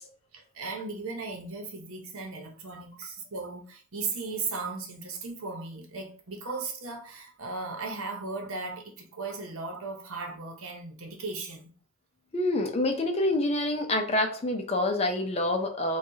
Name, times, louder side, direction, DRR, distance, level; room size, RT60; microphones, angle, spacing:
voice 1, 0.3-11.7, right 3 dB, 80° right, 0.9 m, -37 dB
voice 2, 12.3-16.0, left 1 dB, 30° left, 0.5 m, -27 dB
4.6 x 2.3 x 2.7 m
head